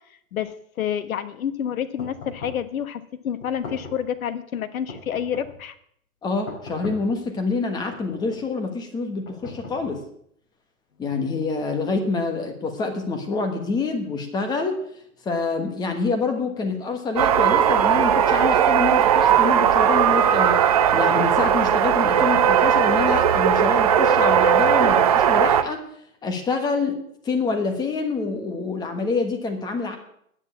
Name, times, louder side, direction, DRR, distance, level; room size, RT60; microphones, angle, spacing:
voice 1, 0.3-5.7, left 9 dB, 65° left, 11 dB, 1.4 m, -29 dB
sound 1, 2.0-2.7 3.4-4.1 4.9-5.6 6.5-7.2 7.9-8.5 9.2-10.1, left 3 dB, 30° left, 4.7 m, -40 dB
voice 2, 6.2-10.0 11.0-14.8 15.2-25.8 26.2-30.0, left 4 dB, 10° left, 6 dB, 1.3 m, -26 dB
sound 2, 17.2-25.6, right 9 dB, 25° right, 0.5 m, -18 dB
9.8 x 9.4 x 8.5 m, 0.68 s
hypercardioid pair, 155°, 44 cm